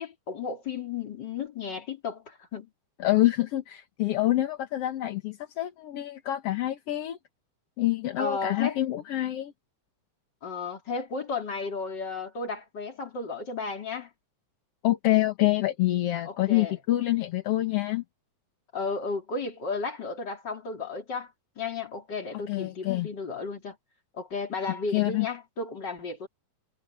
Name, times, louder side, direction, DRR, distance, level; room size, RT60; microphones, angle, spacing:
voice 1, 0.0-2.7 8.2-8.8 10.4-14.1 16.2-16.8 18.7-21.3 21.6-23.8 24.1-26.3, left 4 dB, 30° left, 3.5 m, -34 dB
voice 2, 3.0-7.2 7.8-9.5 14.8-18.0 22.5-23.1 24.9-25.3, left 16 dB, 60° left, 1.7 m, -26 dB
omnidirectional pair, 4.1 m